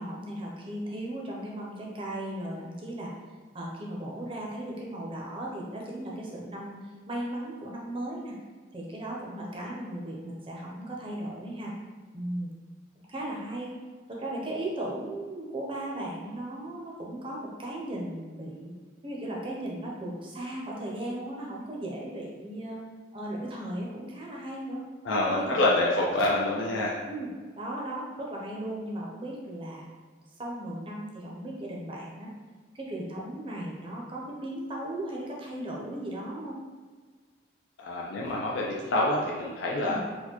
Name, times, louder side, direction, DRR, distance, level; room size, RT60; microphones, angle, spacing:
voice 1, 0.0-3.1 3.5-6.8 7.1-8.3 8.7-11.7 12.1-12.5 13.1-13.7 14.1-18.7 19.0-22.8 23.1-24.8 25.2-25.6 27.1-27.3 27.5-29.9 30.4-32.3 32.7-36.6 39.8-40.0, right 1 dB, 30° right, -3 dB, 0.6 m, -36 dB
voice 2, 25.0-27.0 37.8-40.0, left 2 dB, 80° left, -3 dB, 0.4 m, -26 dB
4.2 x 2.2 x 2.9 m, 1.5 s
head